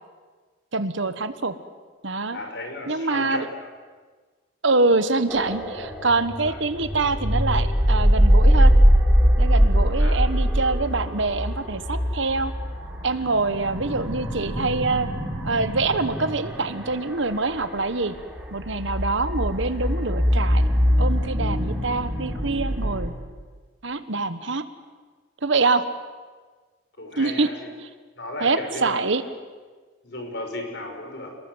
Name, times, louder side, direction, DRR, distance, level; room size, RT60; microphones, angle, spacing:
voice 1, 0.7-1.5 2.0-2.4 2.9-3.5 4.6-8.7 9.4-12.5 13.0-15.1 15.4-18.1 18.5-20.6 21.0-23.1 23.8-24.6 25.4-25.9 27.2-27.5 28.4-29.2, right 3 dB, 65° right, 12 dB, 1.4 m, -25 dB
voice 2, 2.3-3.5 6.4-6.6 10.0-10.3 27.0-27.7 28.2-29.0 30.0-31.4, left 2 dB, 55° left, 3 dB, 5.6 m, -35 dB
sound 1, 5.3-23.1, equal, 5° right, 4.1 m, -22 dB
28.5 x 21.0 x 8.0 m, 1.4 s
head